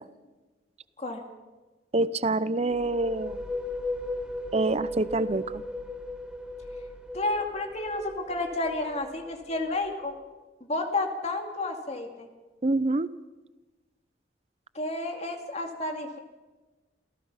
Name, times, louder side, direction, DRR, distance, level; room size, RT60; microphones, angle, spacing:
voice 1, 1.9-3.4 4.5-5.6 12.6-13.1, right 2 dB, 35° right, 16 dB, 0.6 m, -26 dB
sound 1, 2.6-10.2, left 1 dB, 5° right, 1.5 m, -37 dB
voice 2, 7.1-10.1 10.6-12.3 14.7-16.2, left 2 dB, 35° left, 4 dB, 2.4 m, -31 dB
28.0 x 17.0 x 5.7 m, 1.2 s
head